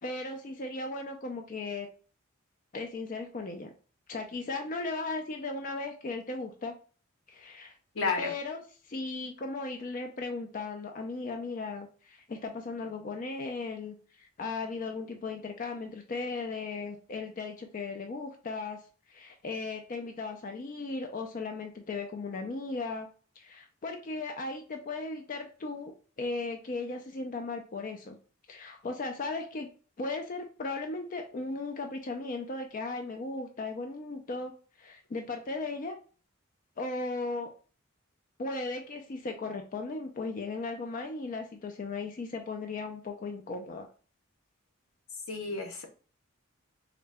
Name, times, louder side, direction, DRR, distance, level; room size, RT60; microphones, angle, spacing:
voice 1, 0.0-1.9 2.7-3.7 4.1-6.8 7.3-7.7 8.2-18.8 19.1-23.1 23.4-25.9 26.2-28.2 28.5-29.7 30.0-34.5 34.8-36.0 36.8-37.5 38.4-43.9, left 3 dB, 40° left, 0.4 m, -36 dB
voice 2, 7.9-8.3 45.3-45.9, left 4 dB, 80° left, 0.7 m, -31 dB
3.7 x 2.1 x 3.3 m
head